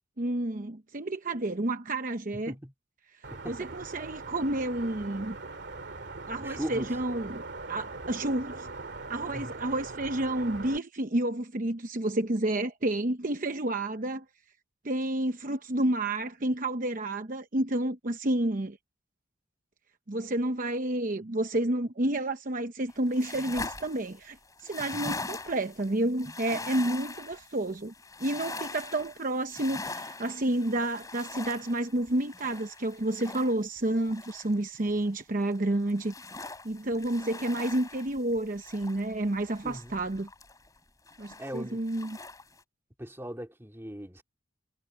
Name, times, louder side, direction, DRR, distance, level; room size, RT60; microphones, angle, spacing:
voice 1, 0.2-2.5 3.1-5.4 6.3-7.4 7.7-8.7 9.1-14.2 14.8-18.8 20.1-27.9 28.2-36.1 36.6-40.3 41.2-42.2, right 1 dB, 45° right, 0.9 m, -30 dB
voice 2, 2.3-2.7 3.3-3.7 6.4-6.9 9.3-9.5 39.6-39.9 41.4-41.8 43.0-44.2, equal, 10° right, 2.8 m, -39 dB
sound 1, 3.2-10.8, right 3 dB, 60° right, 2.4 m, -41 dB
sound 2, 22.9-35.1 35.4-40.8 41.1-42.6, left 3 dB, 20° left, 3.3 m, -42 dB
head